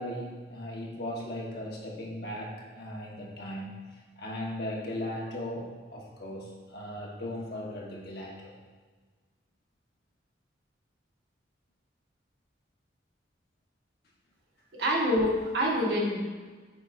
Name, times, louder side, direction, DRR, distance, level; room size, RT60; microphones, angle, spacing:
voice 1, 0.0-3.9 4.2-8.5, left 1 dB, 55° left, -3 dB, 1.2 m, -37 dB
voice 2, 14.7-16.2, equal, 65° right, -3 dB, 1.4 m, -26 dB
8.5 x 5.2 x 2.5 m, 1.4 s
head